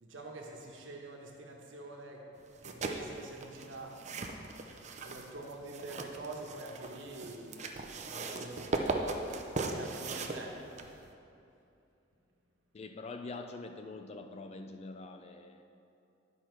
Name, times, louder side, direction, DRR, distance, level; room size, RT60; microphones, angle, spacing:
voice 1, 0.0-2.2 2.6-3.9 5.0-8.7 9.6-10.6, right 2 dB, 85° right, 0 dB, 1.2 m, -46 dB
sound 1, 2.5-11.1, right 3 dB, 35° right, 0.5 m, -38 dB
voice 2, 12.7-15.6, left 3 dB, 35° left, 6 dB, 0.3 m, -44 dB
10.5 x 5.8 x 4.6 m, 2.7 s
head